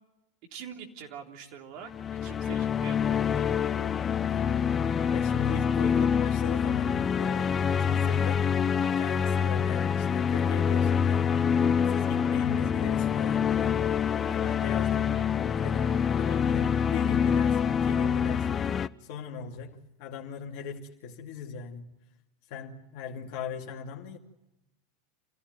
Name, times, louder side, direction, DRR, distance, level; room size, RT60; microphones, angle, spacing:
voice 1, 0.5-1.9 2.2-3.5 14.4-14.8 15.1-15.3, right 7 dB, 55° right, 3.5 m, -44 dB
sound 1, 1.9-18.9, left 7 dB, 25° left, 0.8 m, -26 dB
voice 2, 4.3-8.5 8.8-11.3 11.9-13.8 14.3-15.2 15.5-18.7 19.0-21.9 22.5-24.2, left 6 dB, 55° left, 2.5 m, -39 dB
27.5 x 16.0 x 9.3 m
hypercardioid pair, 90°, 0 cm